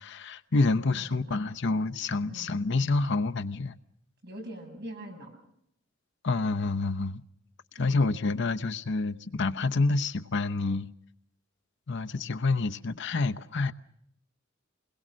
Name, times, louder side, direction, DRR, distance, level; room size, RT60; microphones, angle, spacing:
voice 1, 0.0-3.7 6.2-7.2 7.8-10.9 11.9-13.7, left 3 dB, 65° left, 0.9 m, -28 dB
voice 2, 0.8-1.4 2.2-2.6 4.2-5.3 7.7-8.3, right 1 dB, 55° right, 7.6 m, -44 dB
28.0 x 21.5 x 6.3 m
head